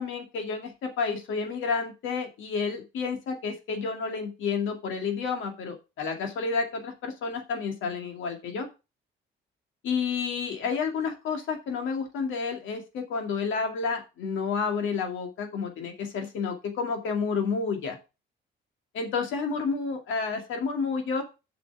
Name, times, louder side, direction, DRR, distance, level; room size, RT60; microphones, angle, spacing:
voice 1, 0.0-8.7 9.8-18.0 18.9-21.2, left 5 dB, 80° left, 4 dB, 2.2 m, -30 dB
7.1 x 6.0 x 5.9 m, 0.29 s
cardioid pair, 90°, 20 cm